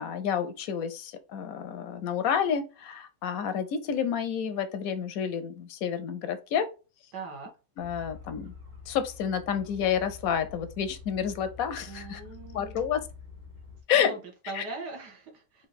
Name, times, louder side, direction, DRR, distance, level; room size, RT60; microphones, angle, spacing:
voice 1, 0.0-6.7 7.8-8.5 8.9-12.2 12.5-13.0 13.9-14.1 14.6-14.7, left 8 dB, 70° left, 0.9 m, -29 dB
voice 2, 7.1-7.5 11.9-12.8 13.9-15.7, right 3 dB, 75° right, 1.8 m, -41 dB
sound 1, 7.8-13.8, left 4 dB, 50° right, 1.8 m, -47 dB
4.6 x 2.6 x 4.0 m
omnidirectional pair, 1.8 m